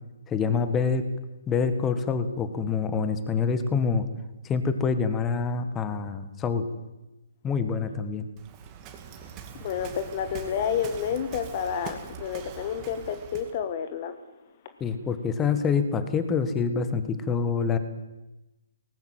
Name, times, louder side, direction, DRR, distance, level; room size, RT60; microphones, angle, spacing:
voice 1, 0.3-1.0 1.5-4.0 4.4-6.6 7.4-8.2 14.8-17.8, left 5 dB, 15° left, 10 dB, 1.7 m, -26 dB
Waves surf, 8.4-13.6, right 7 dB, 25° right, 2.4 m, -43 dB
voice 2, 9.6-14.1, left 8 dB, 40° left, 10 dB, 1.4 m, -30 dB
19.0 x 17.5 x 7.8 m, 1.0 s
figure-of-eight pair, 135°, 0 cm